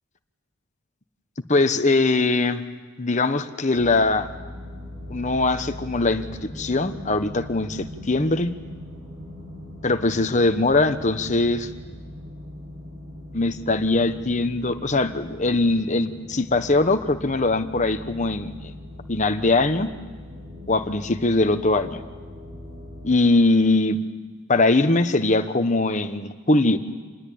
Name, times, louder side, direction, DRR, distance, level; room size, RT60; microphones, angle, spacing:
voice 1, 1.5-2.6 3.0-4.3 5.1-8.5 9.8-11.7 13.3-18.7 19.1-19.9 20.7-22.0 23.0-24.0 24.5-26.8, left 2 dB, 35° left, 9 dB, 1.1 m, -21 dB
sound 1, 3.7-23.1, left 1 dB, 65° right, 7.2 m, -40 dB
27.0 x 21.0 x 8.6 m, 1.4 s
head